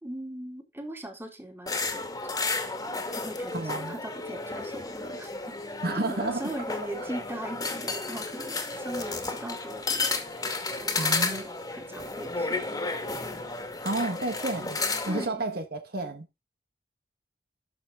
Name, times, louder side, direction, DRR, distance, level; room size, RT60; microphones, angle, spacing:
voice 1, 0.0-2.2 3.1-5.5 5.9-12.6 15.1-15.5, right 1 dB, 15° right, 2.8 m, -40 dB
sound 1, 1.7-15.2, left 3 dB, 20° left, 2.2 m, -32 dB
voice 2, 3.5-3.9 5.8-6.5 7.0-7.1 11.0-11.4 13.8-14.8 15.0-16.3, right 2 dB, 60° right, 1.7 m, -31 dB
12.5 x 6.7 x 3.7 m
head